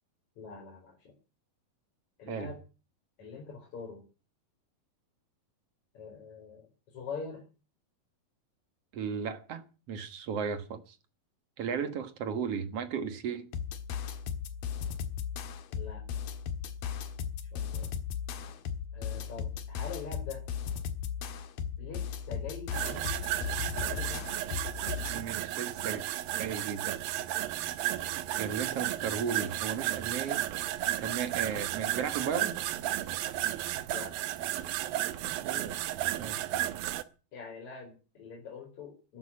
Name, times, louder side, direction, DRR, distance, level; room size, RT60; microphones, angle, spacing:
voice 1, 0.4-1.1 2.2-2.6 3.2-4.0 5.9-6.7 6.9-7.4 15.7-16.0 17.5-17.9 18.4-18.6 18.9-20.4 21.8-23.3 23.8-24.3 33.9-34.1 37.3-39.2, left 5 dB, 50° left, 5.6 m, -44 dB
voice 2, 8.9-11.0 11.6-13.5 25.1-26.0 26.4-27.0 28.4-30.4 31.0-32.5 35.4-35.7 36.2-36.5, right 7 dB, 55° right, 2.0 m, -35 dB
sound 1, 13.5-25.2, left 7 dB, 70° left, 3.1 m, -36 dB
sound 2, 22.7-37.0, right 14 dB, 80° right, 2.7 m, -33 dB
13.0 x 11.5 x 8.5 m
omnidirectional pair, 4.3 m